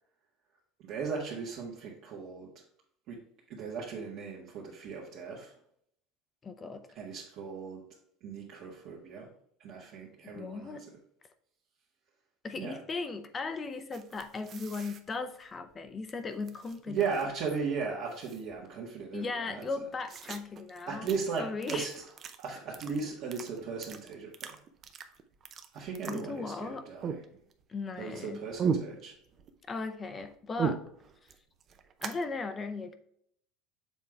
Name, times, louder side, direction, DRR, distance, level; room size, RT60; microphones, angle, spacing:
voice 1, 0.8-2.5 3.1-3.2 3.5-5.6 6.9-7.8 8.2-9.3 9.6-10.8 12.6-12.8 16.9-19.7 20.9-21.9 22.4-24.6 25.7-27.4 28.0-29.1, right 5 dB, 55° right, -5 dB, 1.5 m, -37 dB
voice 2, 6.4-6.9 10.2-10.8 12.4-17.0 19.1-21.1 21.4-21.9 26.1-26.9 27.7-28.4 29.7-30.8 32.0-32.9, left 4 dB, 25° left, 10 dB, 0.6 m, -37 dB
sound 1, 13.9-16.1 16.4-17.5 17.7-17.8 18.1-18.8 19.2-19.3 19.5-26.7 27.0-27.7 28.0-29.5 29.8-32.2, right 6 dB, 35° right, 0.6 m, -38 dB
7.1 x 3.7 x 4.5 m, 0.68 s
supercardioid pair, 130°, 0 cm